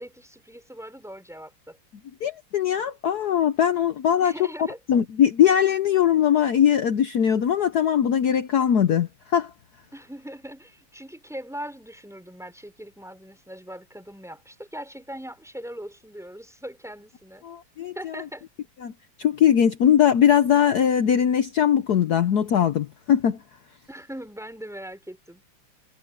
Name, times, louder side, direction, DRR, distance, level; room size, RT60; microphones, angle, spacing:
voice 1, 0.0-1.8 4.2-4.8 9.9-17.5 17.9-18.4 23.9-25.4, equal, ahead, 4.6 m, -40 dB
voice 2, 2.2-4.3 4.9-9.5 17.4-18.2 18.8-18.9 19.2-23.4, left 9 dB, 60° left, 1.2 m, -20 dB
omnidirectional pair, 2.3 m